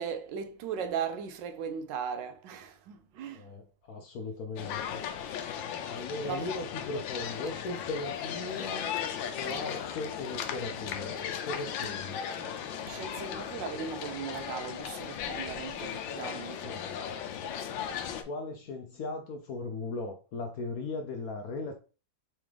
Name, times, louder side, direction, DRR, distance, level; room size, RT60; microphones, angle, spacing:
voice 1, 0.0-3.5 5.7-5.8 6.2-6.5 12.9-16.8, right 7 dB, 80° right, 1.3 m, -38 dB
voice 2, 3.3-5.0 5.9-8.9 9.4-12.2 16.6-17.0 18.3-21.8, left 3 dB, 65° left, 0.9 m, -38 dB
sound 1, 4.6-18.2, left 8 dB, 85° left, 1.3 m, -37 dB
4.0 x 3.6 x 3.2 m
omnidirectional pair, 2.0 m